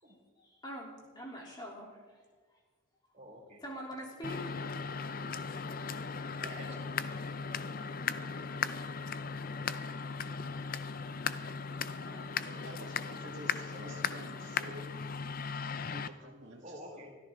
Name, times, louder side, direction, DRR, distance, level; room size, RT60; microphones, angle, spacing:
voice 1, 0.0-2.2 2.5-2.6 3.6-5.1 10.8-11.6 12.0-12.8 16.4-16.5, equal, 20° left, -2 dB, 3.4 m, -47 dB
voice 2, 3.1-3.6 6.2-7.0 13.8-14.0 16.6-17.1, equal, 35° right, -2 dB, 4.4 m, -49 dB
sound 1, 4.2-16.1, left 5 dB, 45° left, 0.6 m, -37 dB
voice 3, 12.4-14.9 15.9-17.1, right 1 dB, 70° right, 1 dB, 2.0 m, -50 dB
24.0 x 13.5 x 3.8 m, 1.5 s
head